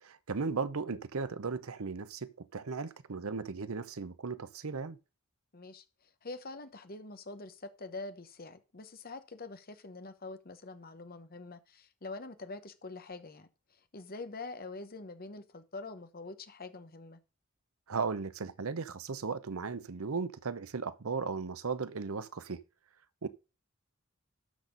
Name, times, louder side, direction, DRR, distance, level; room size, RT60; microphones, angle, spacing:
voice 1, 0.0-5.0 17.9-22.6 23.2-23.3, right 4 dB, 75° right, 0.7 m, -36 dB
voice 2, 5.5-13.5 13.9-17.2, left 3 dB, 45° left, 1.1 m, -45 dB
12.5 x 4.2 x 5.2 m
head